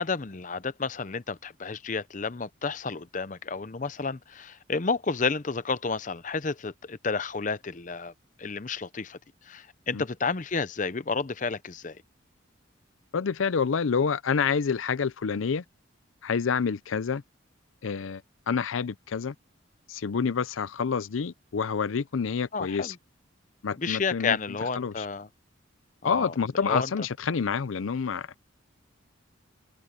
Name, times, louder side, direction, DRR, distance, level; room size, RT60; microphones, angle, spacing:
voice 1, 0.0-8.1 8.4-9.2 9.5-12.0 22.5-22.9 23.8-25.3 26.0-26.3 26.6-26.9, left 4 dB, 40° left, 0.6 m, -31 dB
voice 2, 13.1-15.6 16.2-17.2 17.8-19.3 19.9-23.0 23.6-24.4 24.8-25.1 26.0-28.3, left 6 dB, 85° left, 0.5 m, -28 dB
head